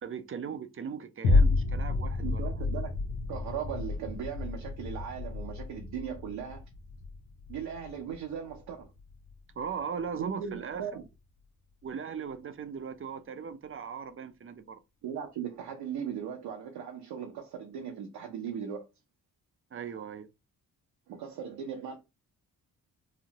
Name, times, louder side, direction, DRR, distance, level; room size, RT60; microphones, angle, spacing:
voice 1, 0.0-2.6 9.6-10.9 11.8-14.8 19.7-20.3, right 6 dB, 35° right, 0.5 m, -38 dB
sound 1, 1.2-9.8 10.3-10.4, left 3 dB, 90° left, 0.7 m, -30 dB
voice 2, 2.2-2.9 3.3-6.6 7.5-8.9 10.1-11.0 15.0-18.9 21.1-22.0, right 8 dB, 80° right, 0.7 m, -38 dB
2.9 x 2.1 x 2.7 m
supercardioid pair, 50°, 38 cm